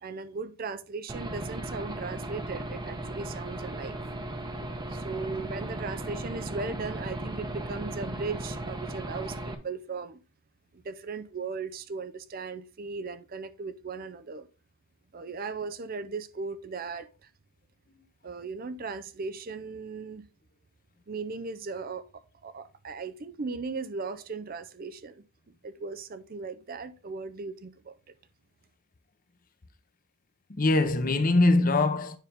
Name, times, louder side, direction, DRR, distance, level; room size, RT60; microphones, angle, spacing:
voice 1, 0.0-4.0 4.9-10.2 10.7-14.5 15.1-17.3 18.2-20.3 21.1-25.2 25.6-27.9, right 4 dB, 40° right, 0.5 m, -37 dB
Aircraft / Engine, 1.1-9.5, right 1 dB, 20° right, 0.8 m, -36 dB
voice 2, 30.5-32.2, left 2 dB, 40° left, 0.8 m, -23 dB
9.3 x 5.2 x 3.5 m
head